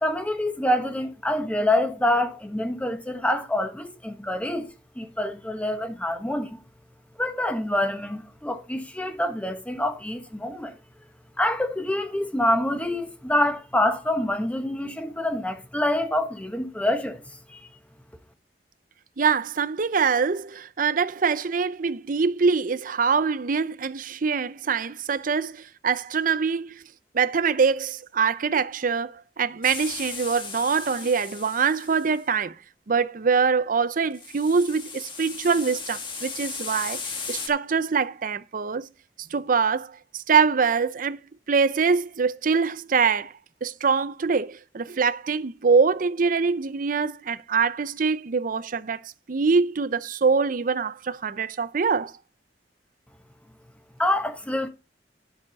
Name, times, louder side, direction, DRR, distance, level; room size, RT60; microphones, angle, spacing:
voice 1, 0.0-4.7 4.9-6.6 7.2-10.7 11.4-17.2 17.5-17.6 54.0-54.7, left 1 dB, 10° left, 1.2 m, -26 dB
voice 2, 19.2-26.8 27.1-32.6 32.9-37.0 37.3-38.9 39.3-41.2 41.5-43.3 43.6-52.1, right 5 dB, 50° right, 0.6 m, -24 dB
sound 1, 29.6-32.2 34.1-37.5, left 5 dB, 30° left, 1.6 m, -36 dB
11.0 x 6.8 x 4.1 m
head